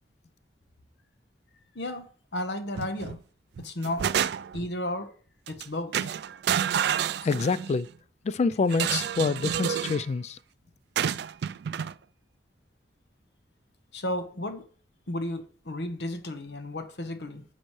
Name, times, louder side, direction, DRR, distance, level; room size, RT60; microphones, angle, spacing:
voice 1, 1.7-2.1 2.3-3.2 3.6-4.1 4.5-5.1 5.5-6.1 13.9-14.6 15.1-17.4, left 1 dB, 70° left, 1.0 m, -33 dB
sound 1, 2.8-3.2 3.6-4.7 5.5-5.6 5.9-7.8 8.7-10.0 11.0-11.9, right 9 dB, 65° right, 0.3 m, -29 dB
voice 2, 7.2-7.9 8.2-10.4, left 4 dB, 40° left, 0.3 m, -26 dB
9.8 x 6.4 x 3.1 m
head